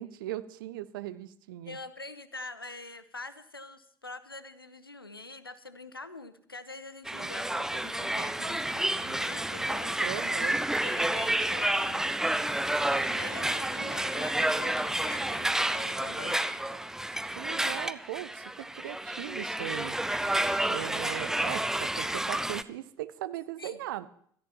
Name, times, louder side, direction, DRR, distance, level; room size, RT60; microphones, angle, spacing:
voice 1, 0.0-1.8 10.0-10.6 17.4-20.0 20.7-24.1, right 14 dB, 65° right, 15 dB, 0.6 m, -38 dB
voice 2, 1.7-10.0 10.8-12.2 12.9-16.4 23.6-23.8, left 3 dB, 85° left, 15 dB, 0.7 m, -44 dB
sound 1, 7.0-22.6, right 1 dB, 5° right, 0.5 m, -30 dB
24.5 x 13.5 x 3.0 m, 0.64 s
figure-of-eight pair, 60°, 12 cm